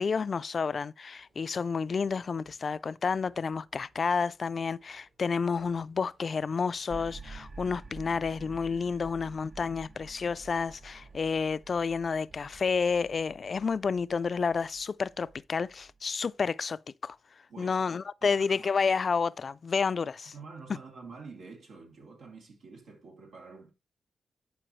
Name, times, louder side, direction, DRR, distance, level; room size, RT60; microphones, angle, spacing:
voice 1, 0.0-17.2 17.6-20.3, left 5 dB, 55° left, 0.3 m, -30 dB
Sliding door, 1.1-13.4, right 2 dB, 70° right, 5.7 m, -66 dB
sound 1, 6.9-16.3, right 4 dB, 55° right, 0.6 m, -49 dB
voice 2, 17.5-17.8 18.2-18.7 20.3-23.7, right 4 dB, 90° right, 2.5 m, -48 dB
11.0 x 4.7 x 3.1 m
cardioid pair, 65°, 0 cm